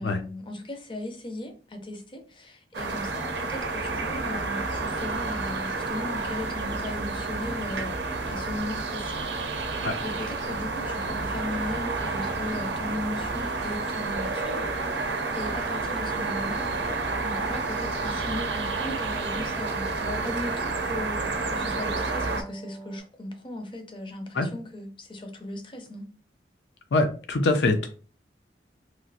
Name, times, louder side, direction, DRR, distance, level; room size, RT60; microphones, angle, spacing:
voice 1, 0.0-8.0 8.3-16.7 17.2-26.1, left 1 dB, 30° left, 0.5 m, -37 dB
sound 1, 2.7-22.4, right 3 dB, 80° right, 0.5 m, -30 dB
sound 2, 12.0-23.0, right 3 dB, 20° right, 0.5 m, -47 dB
voice 2, 26.9-27.9, left 2 dB, 80° left, 0.5 m, -23 dB
3.0 x 2.4 x 2.7 m
head